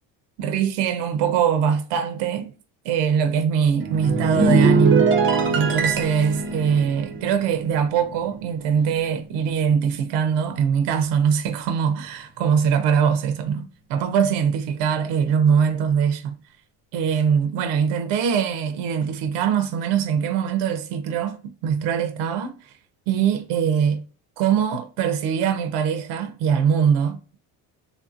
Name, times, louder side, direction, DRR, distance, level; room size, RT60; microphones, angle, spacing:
voice 1, 0.4-2.5 2.8-5.1 5.5-16.4 16.9-22.7 23.1-24.0 24.4-27.4, right 7 dB, 85° right, 0.6 m, -22 dB
sound 1, 3.8-8.4 8.7-9.0, right 4 dB, 30° right, 0.5 m, -22 dB
3.4 x 2.5 x 2.4 m
cardioid pair, 100°, 41 cm